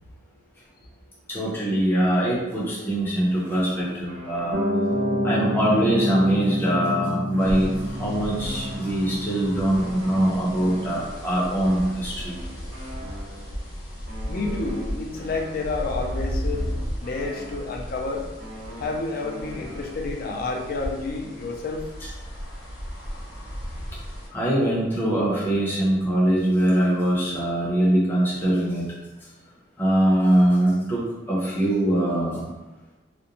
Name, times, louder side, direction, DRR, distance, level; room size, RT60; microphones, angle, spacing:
voice 1, 1.3-4.6 5.2-12.3 24.3-28.9 29.8-32.4, right 1 dB, 10° left, -7 dB, 0.7 m, -22 dB
sound 1, 3.5-5.1 5.4-9.4 9.7-13.6 14.1-18.0 18.4-20.2, equal, 65° right, 1.2 m, -42 dB
Piano, 4.5-11.1, left 1 dB, 45° right, 0.3 m, -28 dB
sound 2, 7.4-24.3, equal, 70° left, 0.8 m, -35 dB
voice 2, 14.3-16.6 17.0-18.2 18.8-21.8, left 3 dB, 50° left, 1 dB, 0.4 m, -29 dB
2.5 x 2.1 x 2.8 m, 1.1 s
head